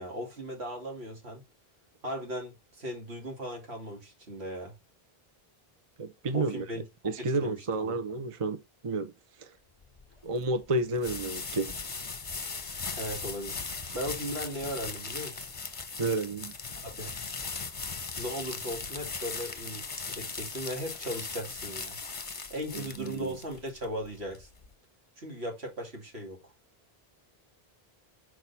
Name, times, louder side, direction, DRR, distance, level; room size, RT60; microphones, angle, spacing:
voice 1, 0.0-1.4 2.0-4.7 6.3-7.1 7.4-8.0 13.0-15.5 16.8-17.1 18.2-22.0 22.5-24.5 25.2-26.4, equal, 85° right, 2.8 m, -38 dB
voice 2, 6.0-6.6 7.0-9.1 9.4-9.5 10.2-11.8 16.0-16.5 22.7-23.4, right 2 dB, 35° right, 0.7 m, -31 dB
sound 1, 9.8-24.7, left 4 dB, 35° left, 0.9 m, -39 dB
6.4 x 4.6 x 4.1 m
omnidirectional pair, 1.0 m